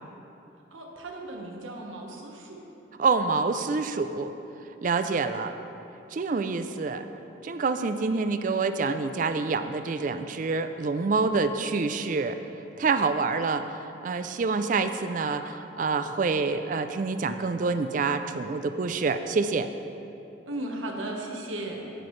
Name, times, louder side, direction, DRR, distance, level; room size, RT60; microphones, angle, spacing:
voice 1, 0.7-2.6 20.5-21.9, right 1 dB, 85° right, 0 dB, 1.2 m, -36 dB
voice 2, 3.0-4.3 4.8-5.5 6.1-7.0 7.4-12.4 12.8-13.7 14.0-19.7, right 4 dB, 40° right, 9 dB, 0.3 m, -27 dB
15.5 x 6.0 x 3.2 m, 2.9 s
head